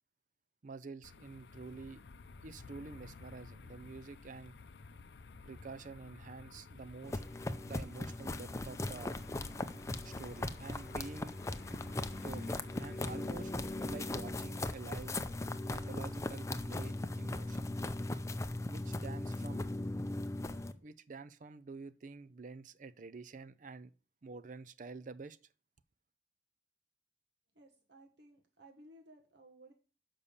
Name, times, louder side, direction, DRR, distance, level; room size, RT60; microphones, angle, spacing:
voice 1, 0.6-2.0 2.4-4.5 5.4-7.2 7.6-9.2 10.0-11.4 12.2-13.5 13.8-15.2 15.6-17.7 18.7-19.7 20.8-23.9 24.2-25.4, right 4 dB, 45° right, 0.5 m, -48 dB
sound 1, 1.0-14.0, left 4 dB, 70° left, 0.5 m, -53 dB
sound 2, 7.0-20.7, left 2 dB, 15° left, 0.6 m, -39 dB
voice 2, 27.5-29.7, right 1 dB, 75° right, 1.3 m, -58 dB
6.8 x 5.5 x 7.1 m
head